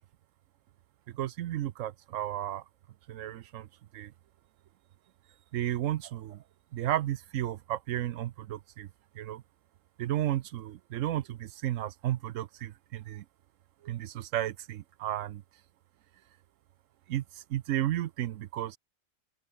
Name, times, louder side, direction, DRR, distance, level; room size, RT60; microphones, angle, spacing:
voice 1, 1.1-2.6 3.1-3.7 3.9-4.1 5.5-6.4 6.7-8.9 9.1-9.4 10.0-13.2 13.8-15.4 17.1-18.8, right 13 dB, 75° right, 1.0 m, -33 dB
open air
omnidirectional pair, 1.4 m